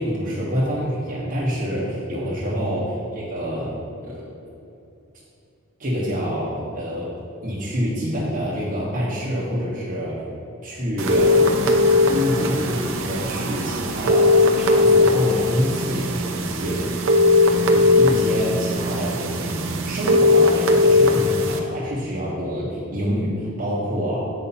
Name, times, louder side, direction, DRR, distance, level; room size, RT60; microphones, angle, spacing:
voice 1, 0.0-4.3 5.8-7.1 7.4-10.2 10.6-16.9 17.7-24.2, equal, 40° right, -7 dB, 1.2 m, -27 dB
sound 1, 11.0-21.6, left 2 dB, 65° right, 0.7 m, -19 dB
8.3 x 5.6 x 4.2 m, 2.6 s
head